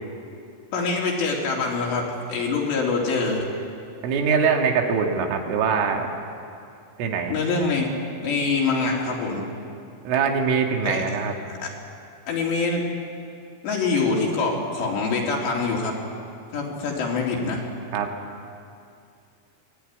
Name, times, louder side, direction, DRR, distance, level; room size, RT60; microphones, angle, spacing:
voice 1, 0.7-3.4 7.3-7.9 8.2-9.4 10.8-11.0 11.5-11.7 12.3-12.8 13.6-15.9 16.5-17.6, left 4 dB, 65° left, -2 dB, 5.0 m, -25 dB
voice 2, 4.0-6.1 7.0-7.4 10.1-11.4 17.9-18.1, right 6 dB, 80° right, 2 dB, 4.4 m, -23 dB
23.0 x 17.5 x 9.6 m, 2.5 s
omnidirectional pair, 5.5 m